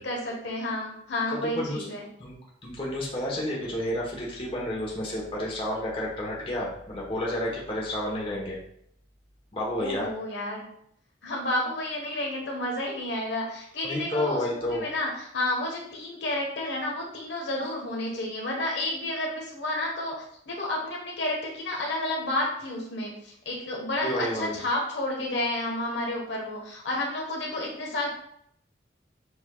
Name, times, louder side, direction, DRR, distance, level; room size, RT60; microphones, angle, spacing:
voice 1, 0.0-2.1 9.8-10.6 11.2-28.1, left 1 dB, 65° left, -1 dB, 1.1 m, -31 dB
voice 2, 1.4-1.9 2.2-2.3 2.6-8.6 9.5-10.1 13.8-14.9 24.0-24.6, left 1 dB, 30° left, -4 dB, 1.1 m, -30 dB
6.8 x 3.4 x 2.3 m, 0.68 s
head